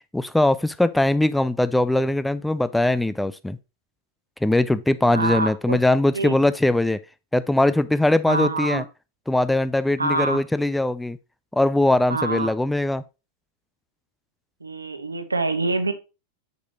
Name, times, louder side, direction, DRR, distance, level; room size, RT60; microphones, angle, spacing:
voice 1, 0.1-3.6 4.4-7.0 7.3-8.8 9.3-11.2 11.5-13.0, left 1 dB, 5° left, 0.4 m, -21 dB
voice 2, 5.1-5.8 6.1-6.4 8.3-8.8 10.0-10.4 12.1-12.5 14.6-15.9, right 3 dB, 80° right, 0.9 m, -25 dB
6.7 x 6.5 x 2.8 m
figure-of-eight pair, 90°, 0 cm